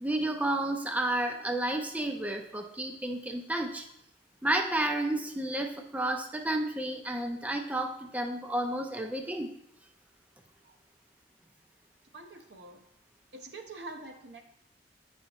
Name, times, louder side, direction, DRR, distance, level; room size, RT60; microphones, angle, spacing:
voice 1, 0.0-3.9 4.4-9.5, right 1 dB, 10° right, 4 dB, 0.4 m, -31 dB
voice 2, 12.1-12.8 13.3-14.4, right 2 dB, 70° right, 4 dB, 0.8 m, -45 dB
9.0 x 5.5 x 2.9 m, 0.76 s
head